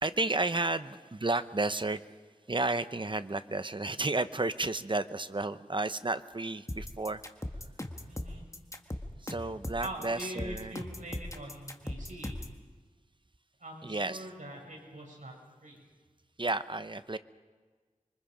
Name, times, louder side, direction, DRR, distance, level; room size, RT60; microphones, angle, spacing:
voice 1, 0.0-2.0 2.5-7.2 9.2-10.7 13.8-14.3 16.4-17.2, right 2 dB, 40° right, 12 dB, 0.9 m, -32 dB
sound 1, 6.7-12.6, left 1 dB, 25° left, 1.6 m, -39 dB
voice 2, 8.1-8.5 9.8-12.4 13.6-15.4 15.6-15.8, right 1 dB, 75° right, 0 dB, 6.2 m, -43 dB
26.5 x 24.0 x 5.1 m, 1.4 s
wide cardioid pair, 65°, 13 cm